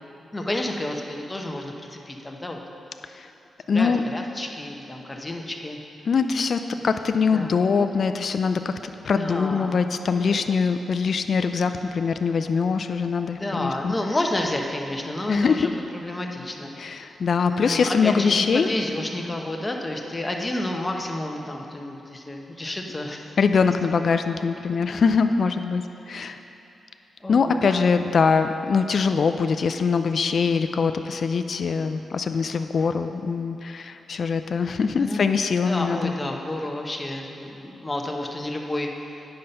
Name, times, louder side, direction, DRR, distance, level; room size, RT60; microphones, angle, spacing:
voice 1, 0.3-2.6 3.7-5.8 7.3-7.9 9.1-9.9 10.3-10.4 13.3-16.7 17.5-23.3 24.0-24.1 27.2-27.9 34.9-35.2 35.7-39.1, left 1 dB, 20° left, 2 dB, 0.9 m, -30 dB
voice 2, 3.7-4.0 6.1-13.9 15.3-15.7 16.8-18.7 23.4-26.4 27.3-36.1, left 5 dB, 55° left, 8 dB, 0.3 m, -23 dB
9.5 x 5.6 x 5.3 m, 3.0 s
cardioid pair, 95°, 0 cm